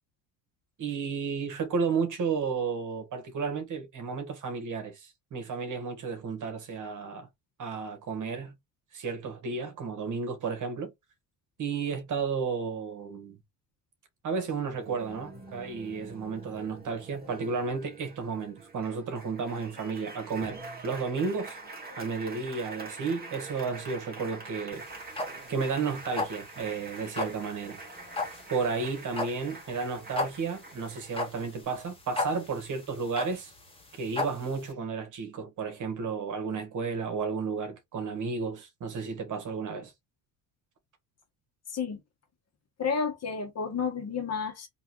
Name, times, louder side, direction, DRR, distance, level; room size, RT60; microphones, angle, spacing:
voice 1, 0.8-7.3 7.6-8.5 8.9-10.9 11.6-13.4 14.2-21.6 22.0-24.8 25.5-27.8 28.5-33.5 33.9-39.9, right 5 dB, 50° right, 1.7 m, -32 dB
Applause, 14.7-31.6, right 3 dB, 25° right, 2.0 m, -45 dB
sound 1, 24.7-34.7, left 3 dB, 15° left, 1.7 m, -35 dB
voice 2, 42.8-44.7, left 5 dB, 40° left, 1.6 m, -31 dB
3.8 x 3.1 x 3.1 m
supercardioid pair, 85°, 38 cm